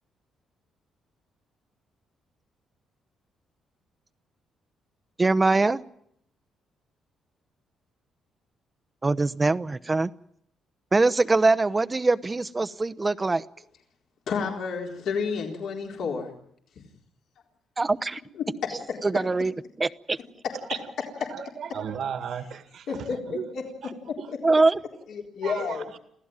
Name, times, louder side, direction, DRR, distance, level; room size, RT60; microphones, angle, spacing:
voice 1, 5.2-5.8 9.0-10.1 10.9-13.4 17.8-18.2 19.0-19.5 19.8-20.2 24.4-24.8, right 3 dB, 25° right, 16 dB, 0.9 m, -22 dB
voice 2, 14.3-16.3 16.8-16.9 18.3-18.5 18.9-19.0 21.2-21.3 22.9-24.4 25.1-25.9, left 5 dB, 70° left, 1 dB, 4.1 m, -31 dB
voice 3, 21.3-22.9 23.3-23.4 23.8-23.9 24.2-24.3 25.4-26.0, right 8 dB, 65° right, 10 dB, 2.1 m, -35 dB
27.0 x 15.5 x 9.0 m, 0.72 s
cardioid pair, 90°, 0 cm